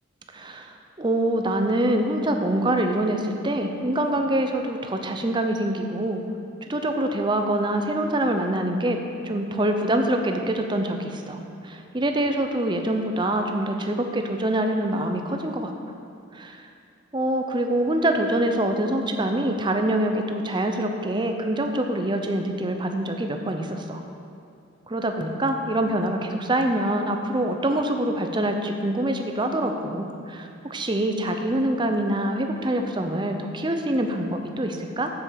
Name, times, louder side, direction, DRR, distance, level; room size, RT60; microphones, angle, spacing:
voice 1, 0.3-6.2 6.6-9.0 9.2-11.4 11.6-15.9 16.3-16.6 17.1-24.0 24.9-35.1, right 1 dB, 25° right, 4 dB, 0.7 m, -25 dB
7.3 x 7.0 x 6.9 m, 2.5 s
head